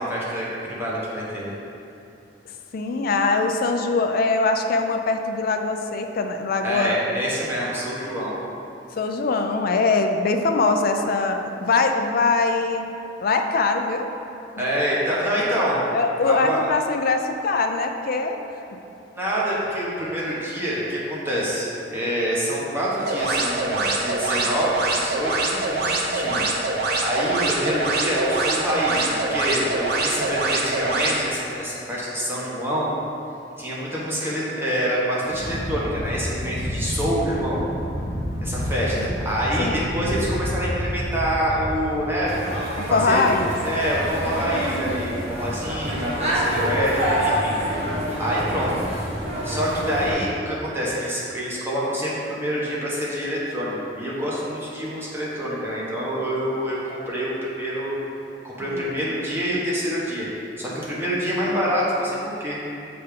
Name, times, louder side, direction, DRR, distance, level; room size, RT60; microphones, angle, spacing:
voice 1, 0.0-1.5 6.6-8.4 14.6-15.8 16.2-16.7 19.1-32.9 33.6-37.6 38.4-42.3 42.9-43.3 43.6-47.6 48.2-48.9 49.4-57.9 58.4-60.2 60.6-62.6, equal, 15° right, -7 dB, 1.3 m, -26 dB
voice 2, 2.7-7.0 9.0-12.9 13.2-14.1 15.9-18.4 38.9-39.1 39.6-39.9 42.9-43.5 58.7-59.0, left 3 dB, 55° left, 5 dB, 0.4 m, -22 dB
sound 1, 23.0-31.2, right 2 dB, 60° right, 0.7 m, -24 dB
sound 2, 35.3-42.2, equal, 25° left, 1.3 m, -29 dB
sound 3, 42.3-50.1, right 1 dB, 35° right, 1.2 m, -27 dB
6.8 x 3.4 x 5.1 m, 2.8 s
head